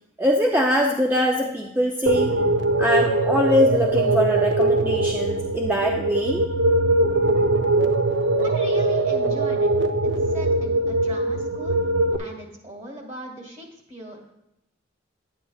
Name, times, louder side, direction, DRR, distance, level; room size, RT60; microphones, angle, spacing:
voice 1, 0.2-2.3 2.8-6.5, equal, 10° right, 0 dB, 0.4 m, -22 dB
sound 1, 2.1-12.2, right 2 dB, 75° right, 0.6 m, -21 dB
voice 2, 8.4-9.7 10.0-11.8 12.2-14.3, equal, 40° right, 1 dB, 1.9 m, -39 dB
10.0 x 9.5 x 2.3 m, 0.84 s
head